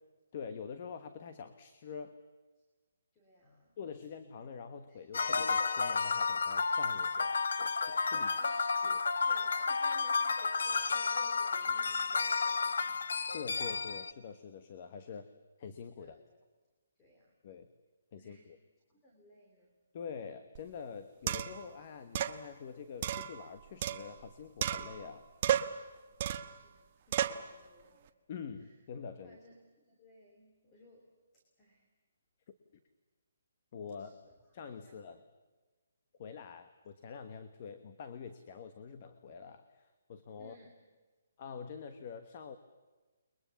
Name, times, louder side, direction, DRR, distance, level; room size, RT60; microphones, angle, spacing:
voice 1, 0.3-2.2 3.8-8.3 8.8-9.0 13.3-15.3 15.6-16.2 17.4-17.7 18.1-18.6 19.9-25.2 28.3-29.4 33.7-34.2 34.5-35.2 36.2-40.6 41.4-42.6, left 6 dB, 30° left, 9 dB, 1.2 m, -46 dB
voice 2, 3.1-3.7 4.9-5.0 8.1-8.7 9.2-13.0 16.0-16.2 17.0-17.3 18.2-18.5 18.9-19.7 26.3-28.0 29.2-29.6 29.8-31.1 31.6-31.9 34.0-34.3 34.8-35.0 40.4-40.7, equal, 10° left, 0 dB, 2.8 m, -59 dB
sound 1, 5.1-14.1, left 4 dB, 70° left, 1.2 m, -31 dB
sound 2, 20.6-20.7 21.3-21.7 22.2-22.4 23.0-24.3 24.6-25.1 25.4-25.8 26.2-26.6 27.1-27.5, right 10 dB, 25° right, 1.0 m, -33 dB
30.0 x 22.5 x 7.1 m, 1.3 s
hypercardioid pair, 180°, 0 cm